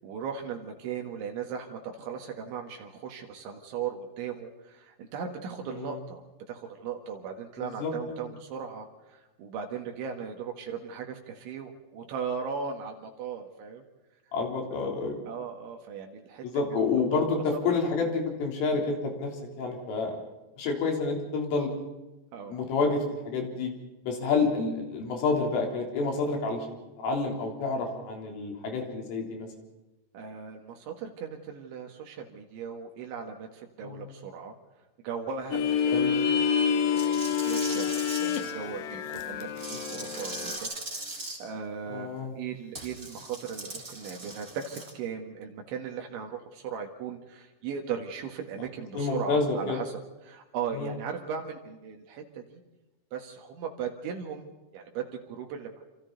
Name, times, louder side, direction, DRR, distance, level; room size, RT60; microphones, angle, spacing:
voice 1, 0.0-13.8 14.7-14.9 15.3-16.5 17.1-17.3 17.7-17.8 22.3-22.6 30.1-34.6 35.0-40.7 41.0-52.6 53.1-55.8, right 6 dB, 75° right, 3 dB, 4.0 m, -38 dB
voice 2, 7.8-8.2 14.3-15.2 16.4-19.3 19.6-20.2 20.6-21.7 22.5-23.7 24.0-26.7 27.0-29.5 33.8-34.1 35.9-36.1 41.9-42.3 49.0-49.8 50.7-50.9, left 4 dB, 85° left, 1 dB, 6.1 m, -29 dB
sound 1, 35.5-40.6, left 7 dB, 70° left, 2.3 m, -28 dB
sound 2, 36.9-38.5 39.6-41.4 42.7-44.9, right 2 dB, 15° right, 3.3 m, -39 dB
27.0 x 27.0 x 4.0 m, 1.0 s
omnidirectional pair, 5.6 m